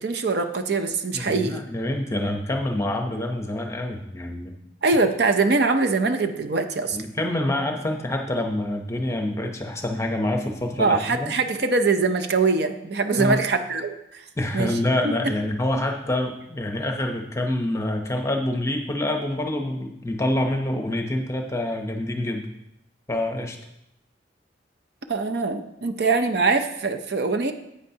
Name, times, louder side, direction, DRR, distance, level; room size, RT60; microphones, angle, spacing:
voice 1, 0.0-1.6 4.8-7.0 10.8-14.2 14.5-14.7 15.0-15.3 25.1-27.5, right 3 dB, 60° right, 7 dB, 0.6 m, -23 dB
voice 2, 1.1-4.5 6.9-11.3 13.1-13.5 14.4-22.5 23.1-23.6, left 1 dB, 15° left, 3 dB, 0.8 m, -26 dB
9.7 x 8.5 x 2.8 m, 0.84 s
head